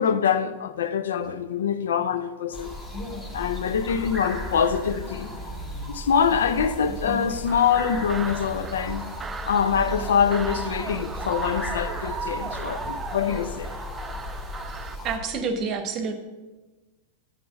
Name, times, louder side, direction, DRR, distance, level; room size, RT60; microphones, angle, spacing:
voice 1, 0.0-2.7 3.3-5.3 5.9-9.0 9.5-13.7, left 7 dB, 65° left, 0.4 m, -24 dB
sound 1, 2.5-15.2, left 1 dB, 20° left, 2.4 m, -35 dB
sound 2, 7.5-15.0, right 5 dB, 15° right, 0.4 m, -36 dB
voice 2, 15.0-16.1, right 5 dB, 35° right, 1.0 m, -28 dB
7.8 x 6.1 x 5.9 m
figure-of-eight pair, 90°, 0 cm